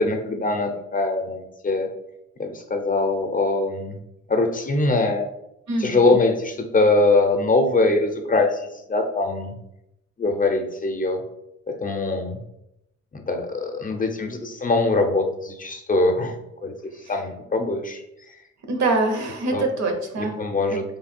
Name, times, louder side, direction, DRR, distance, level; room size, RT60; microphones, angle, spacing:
voice 1, 0.0-1.9 2.4-4.0 4.3-5.3 5.8-9.5 10.2-11.2 11.7-12.4 13.1-16.4 16.6-16.7 17.1-18.4 19.5-19.7 20.2-20.8, left 3 dB, 30° left, 4 dB, 0.5 m, -22 dB
voice 2, 5.7-6.2 18.7-20.3 20.7-20.8, right 2 dB, 65° right, 4 dB, 0.9 m, -24 dB
3.2 x 2.3 x 4.3 m, 0.83 s
cardioid pair, 90°, 30 cm